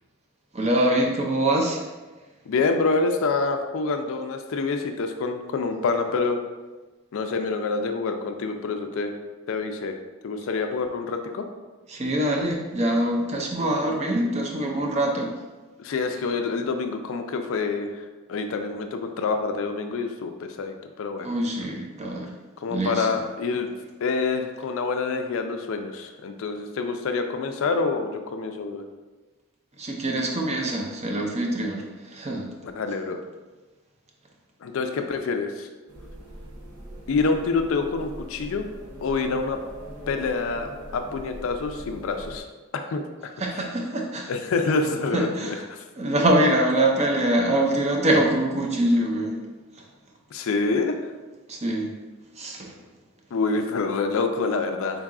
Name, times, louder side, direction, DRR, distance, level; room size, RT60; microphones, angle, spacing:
voice 1, 0.5-1.9 11.9-15.3 21.2-22.3 22.7-23.2 29.8-32.5 43.4-44.3 45.1-45.7 46.0-49.4 49.8-49.9 51.5-51.9 52.4-52.8, right 1 dB, 30° right, 0 dB, 0.4 m, -24 dB
voice 2, 2.5-6.4 7.1-9.1 9.5-10.0 10.2-11.5 15.8-21.3 22.6-23.7 24.0-28.9 32.8-33.2 34.6-35.7 37.1-38.6 39.0-39.6 40.1-42.4 42.7-43.3 44.3-45.8 50.3-51.0 53.3-55.0, left 4 dB, 70° left, 6 dB, 0.3 m, -27 dB
sound 1, 35.9-42.4, right 1 dB, 90° right, 0.6 m, -41 dB
3.9 x 2.3 x 3.6 m, 1.2 s
head